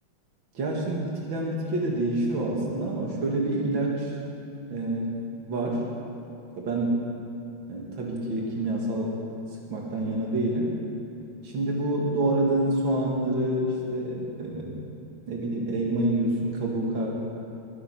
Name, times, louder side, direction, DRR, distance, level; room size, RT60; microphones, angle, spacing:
voice 1, 0.5-4.1 4.7-5.1 5.5-5.8 6.6-6.8 7.7-9.1 9.7-10.7 11.4-14.8 15.3-17.1, right 1 dB, 70° right, -2 dB, 2.9 m, -27 dB
20.5 x 10.0 x 6.1 m, 2.8 s
omnidirectional pair, 2.2 m